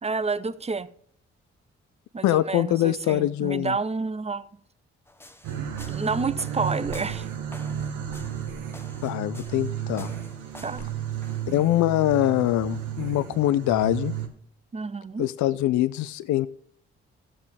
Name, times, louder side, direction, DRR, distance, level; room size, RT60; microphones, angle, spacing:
voice 1, 0.0-0.9 2.1-4.5 5.6-7.3 10.6-10.9 14.7-15.3, right 4 dB, 20° right, 0.7 m, -29 dB
voice 2, 2.2-3.7 9.0-10.1 11.5-14.1 15.2-16.5, left 14 dB, 75° left, 0.5 m, -23 dB
sound 1, 5.1-11.5, left 1 dB, 10° left, 1.1 m, -47 dB
sound 2, 5.4-14.3, right 9 dB, 85° right, 1.2 m, -33 dB
12.5 x 7.6 x 3.5 m
hypercardioid pair, 45°, 30 cm